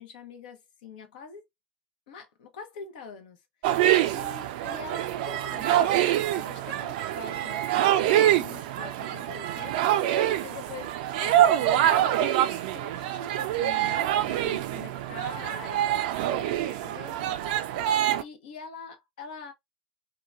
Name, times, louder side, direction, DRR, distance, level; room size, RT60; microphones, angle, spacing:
voice 1, 0.0-1.4 2.1-3.4 3.7-10.0 10.4-10.9 11.2-17.5 18.2-19.5, left 5 dB, 70° left, 0.6 m, -44 dB
sound 1, 3.6-18.2, right 12 dB, 65° right, 0.3 m, -25 dB
2.9 x 2.2 x 2.3 m
figure-of-eight pair, 75°, 5 cm